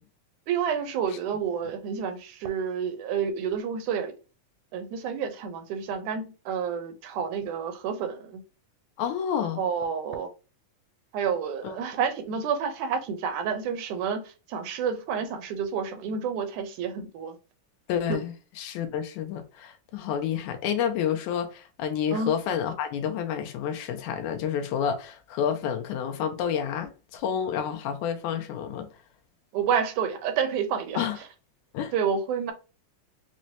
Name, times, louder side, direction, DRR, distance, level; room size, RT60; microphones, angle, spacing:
voice 1, 0.5-4.1 4.7-8.4 9.6-10.3 11.1-17.4 18.1-18.2 22.1-22.3 29.5-31.1 31.9-32.5, right 7 dB, 80° right, 2.0 m, -29 dB
voice 2, 9.0-9.6 11.6-11.7 17.9-28.9 31.0-31.2 31.7-31.9, left 8 dB, 85° left, 2.0 m, -29 dB
6.0 x 2.1 x 2.7 m
omnidirectional pair, 3.5 m